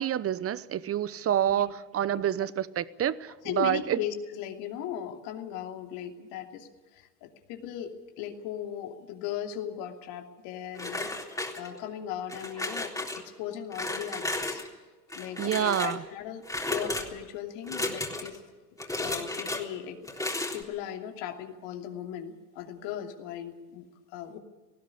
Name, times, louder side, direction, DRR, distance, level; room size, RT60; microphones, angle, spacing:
voice 1, 0.0-4.0 15.4-16.0, right 10 dB, 30° right, 18 dB, 0.9 m, -28 dB
voice 2, 3.4-14.6 15.1-18.4 19.0-24.4, left 10 dB, 60° left, 4 dB, 2.9 m, -38 dB
sound 1, 10.8-11.9 12.3-13.2 13.7-14.7 15.1-16.0 16.4-17.1 17.6-18.4 18.8-19.6 20.0-20.6, left 2 dB, 5° left, 3.7 m, -33 dB
19.0 x 16.0 x 9.9 m, 1.3 s
hypercardioid pair, 85°, 48 cm